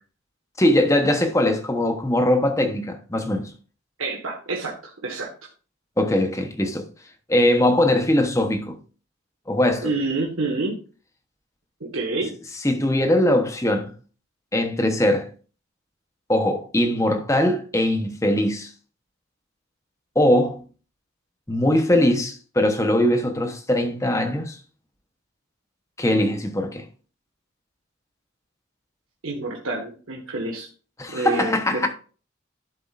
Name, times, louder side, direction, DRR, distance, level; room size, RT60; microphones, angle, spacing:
voice 1, 0.6-3.5 6.0-6.9 7.3-8.8 9.5-9.9 12.6-13.9 14.5-15.3 16.3-18.7 20.1-20.6 21.5-24.6 26.0-26.9 31.0-31.9, left 1 dB, 15° left, 1.0 m, -21 dB
voice 2, 4.0-5.3 9.8-10.8 11.8-12.3 29.2-30.7 31.1-31.9, right 2 dB, 90° right, 1.6 m, -28 dB
11.5 x 7.3 x 2.5 m
head